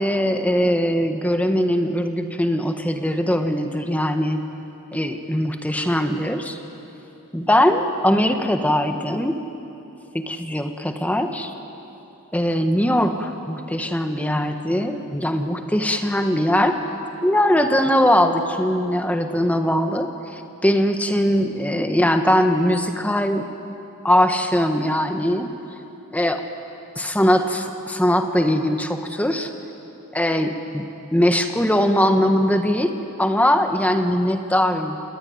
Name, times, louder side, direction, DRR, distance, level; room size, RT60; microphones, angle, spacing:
voice 1, 0.0-4.4 4.9-6.6 7.3-9.4 10.1-11.5 12.3-16.8 17.2-23.5 24.0-25.5 26.1-26.4 26.9-29.5 30.1-30.8 31.1-32.9 33.2-35.0, equal, 5° left, 5 dB, 1.4 m, -21 dB
29.5 x 19.0 x 9.6 m, 3.0 s
head